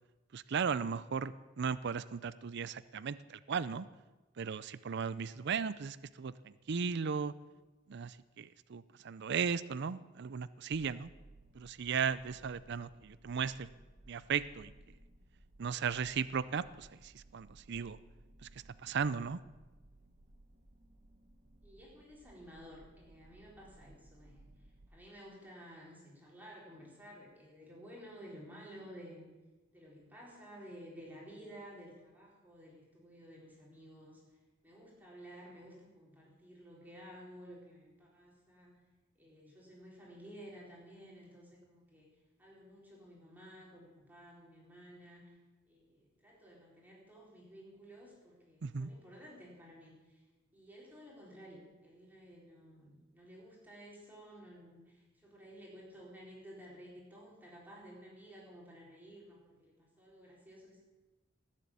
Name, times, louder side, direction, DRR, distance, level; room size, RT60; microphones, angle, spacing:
voice 1, 0.3-3.9 4.4-7.3 7.9-11.1 11.5-13.7 14.1-14.7 15.6-18.0 18.8-19.4 48.6-48.9, right 6 dB, 60° right, 16 dB, 0.5 m, -36 dB
sound 1, 10.7-24.9, right 1 dB, 40° right, 1.0 m, -60 dB
voice 2, 21.6-24.5 24.9-29.3 29.7-34.2 34.6-38.8 39.2-42.1 42.4-45.3 45.7-50.2 50.5-60.8, equal, 10° right, -4 dB, 4.0 m, -53 dB
19.5 x 7.5 x 8.4 m, 1.2 s
head